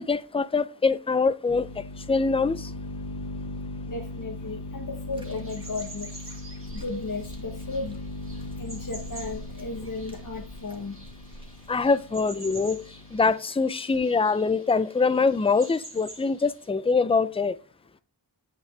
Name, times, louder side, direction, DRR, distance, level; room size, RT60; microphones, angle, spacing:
voice 1, 0.0-2.7 11.7-12.8 13.1-17.6, left 4 dB, 15° left, 0.4 m, -24 dB
sound 1, 1.5-13.3, left 3 dB, 65° left, 2.1 m, -39 dB
voice 2, 3.9-6.1 6.7-8.0 8.6-11.0, left 3 dB, 45° left, 1.1 m, -35 dB
sound 2, 5.0-12.3 13.1-13.2, equal, 10° right, 1.8 m, -47 dB
sound 3, 5.2-16.7, right 2 dB, 30° right, 1.9 m, -48 dB
8.5 x 6.0 x 3.3 m
wide cardioid pair, 45°, 43 cm